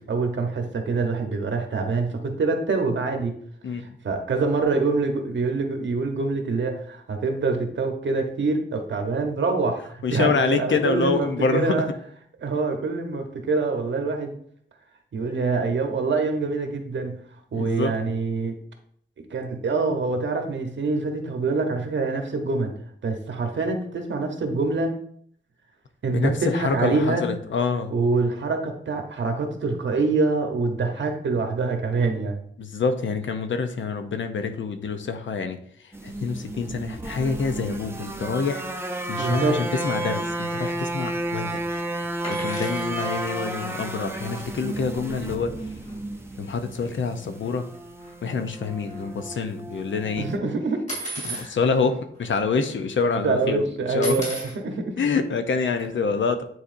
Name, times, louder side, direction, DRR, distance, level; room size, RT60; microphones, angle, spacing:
voice 1, 0.0-3.3 3.8-11.9 12.4-14.4 15.1-17.2 17.5-18.5 19.3-22.7 23.0-24.9 26.0-27.2 27.9-32.4 39.2-39.6 50.2-50.8 51.3-51.6 53.2-54.9, right 3 dB, 80° right, 4 dB, 1.0 m, -25 dB
voice 2, 10.0-11.8 17.5-17.9 26.1-27.9 32.6-35.6 36.0-38.6 39.1-41.6 42.3-45.5 46.4-47.6 48.2-50.3 51.2-53.6 53.9-54.2 55.0-56.4, left 4 dB, 80° left, 8 dB, 0.7 m, -26 dB
sound 1, 35.9-50.4, right 2 dB, 15° right, 0.6 m, -32 dB
sound 2, 42.2-42.9 45.1-45.2 45.4-45.6 45.8-46.0 46.7-46.9 47.3-47.8 48.0-49.5 50.9-51.5 52.2-52.3 52.6-53.1 54.0-54.6 55.8-55.9, right 1 dB, 40° left, 2.7 m, -35 dB
9.3 x 4.2 x 2.6 m, 0.63 s
wide cardioid pair, 155°, 19 cm